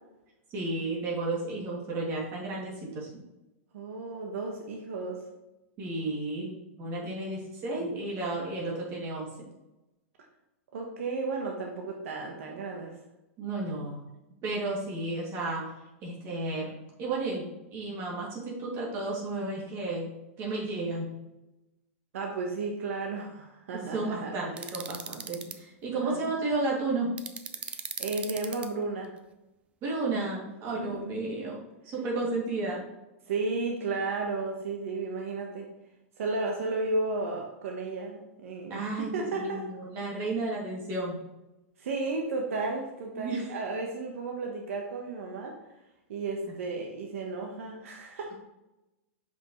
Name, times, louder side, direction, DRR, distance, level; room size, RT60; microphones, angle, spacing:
voice 1, 0.5-3.2 5.8-9.5 13.4-14.0 14.4-15.6 16.0-20.1 20.4-21.1 23.9-27.1 29.8-32.8 38.7-41.2 43.1-43.4, right 2 dB, 35° right, -4 dB, 2.5 m, -33 dB
voice 2, 3.7-5.2 10.7-13.0 22.1-24.3 26.0-26.3 27.7-29.1 30.8-31.1 33.3-35.7 36.2-39.6 41.8-45.6 46.1-48.3, right 3 dB, 75° right, 1 dB, 1.2 m, -33 dB
sound 1, 24.6-25.5 27.2-28.7, right 6 dB, 15° right, 0.4 m, -37 dB
7.0 x 5.6 x 3.2 m, 0.97 s
supercardioid pair, 150°, 7 cm